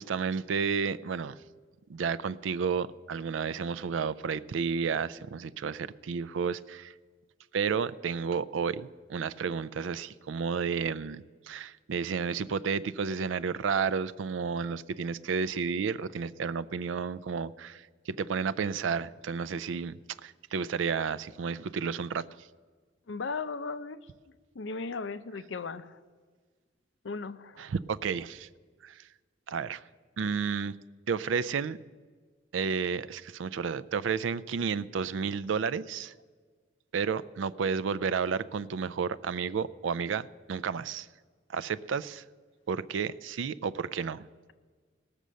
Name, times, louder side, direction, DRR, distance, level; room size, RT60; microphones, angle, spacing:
voice 1, 0.0-1.4 1.9-6.9 7.5-22.2 27.6-28.5 28.8-29.0 29.5-29.8 30.2-30.8 31.1-31.8 32.5-36.1 36.9-41.1 41.5-42.2 42.7-44.3, right 6 dB, 85° right, 16 dB, 0.4 m, -31 dB
voice 2, 23.1-24.1 24.5-26.0 27.0-27.7, left 4 dB, 75° left, 13 dB, 0.6 m, -36 dB
18.5 x 6.8 x 6.3 m, 1.5 s
head